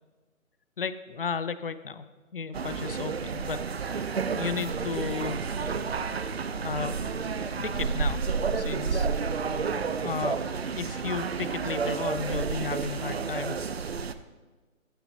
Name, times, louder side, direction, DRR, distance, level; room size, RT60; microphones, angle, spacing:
voice 1, 0.8-2.1 2.3-4.1 4.4-5.4 6.6-7.1 7.6-8.2 8.5-9.1 10.0-10.4 10.8-13.7, left 5 dB, 45° left, 13 dB, 0.6 m, -34 dB
sound 1, 2.5-14.1, right 5 dB, 50° right, 0.7 m, -30 dB
14.5 x 12.5 x 2.7 m, 1.3 s
figure-of-eight pair, 155°, 41 cm